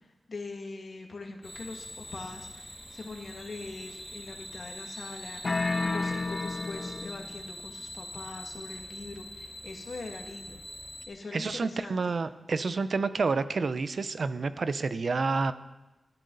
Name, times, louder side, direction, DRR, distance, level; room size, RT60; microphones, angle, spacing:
voice 1, 0.3-10.6 11.1-12.2, left 3 dB, 60° left, 2 dB, 2.2 m, -42 dB
sound 1, 1.4-11.1, left 1 dB, 5° left, 5.1 m, -43 dB
sound 2, 5.4-7.4, left 3 dB, 45° left, 0.7 m, -31 dB
voice 2, 11.3-15.5, right 4 dB, 60° right, 12 dB, 0.7 m, -29 dB
19.0 x 13.5 x 4.1 m, 1.0 s
wide cardioid pair, 105°, 0 cm